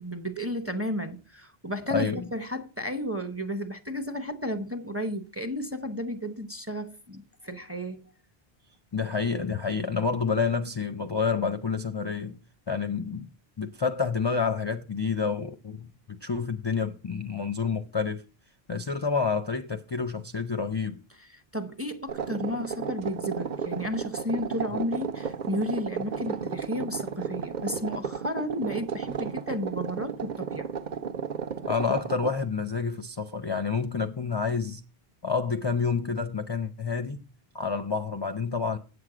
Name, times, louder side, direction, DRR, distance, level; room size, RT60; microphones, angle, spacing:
voice 1, 0.0-8.0 21.5-30.7, equal, 15° right, 0.7 m, -33 dB
voice 2, 1.9-2.3 8.9-12.4 12.7-13.3 13.6-18.2 18.7-21.0 31.7-34.8 35.2-37.2 37.5-38.8, left 5 dB, 35° left, 0.5 m, -28 dB
sound 1, 22.1-32.4, right 7 dB, 50° right, 0.7 m, -34 dB
8.1 x 7.9 x 4.9 m
omnidirectional pair, 1.0 m